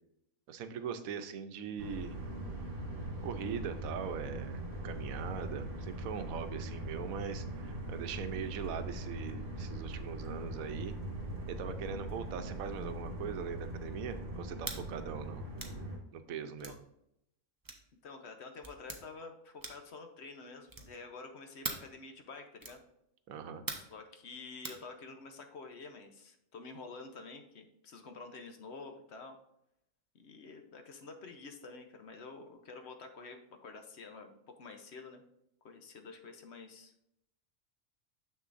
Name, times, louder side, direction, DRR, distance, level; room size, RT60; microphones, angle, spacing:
voice 1, 0.5-2.2 3.2-11.0 11.5-15.5 16.1-16.8 23.3-23.6, right 7 dB, 90° right, 9 dB, 1.1 m, -41 dB
sound 1, 1.8-16.0, right 1 dB, 60° right, 2.1 m, -41 dB
sound 2, 14.6-14.8 15.6-15.8 16.6-16.8 17.6-17.9 18.6-19.0 19.6-19.9 20.7-21.0 21.6-21.9 22.6-22.8 23.7-24.0 24.6-24.8, right 3 dB, 20° right, 0.6 m, -41 dB
voice 2, 18.0-22.8 23.7-29.4 30.1-35.2 35.6-36.9, left 4 dB, 60° left, 6 dB, 1.0 m, -49 dB
6.8 x 6.6 x 2.5 m, 0.79 s
omnidirectional pair, 1.4 m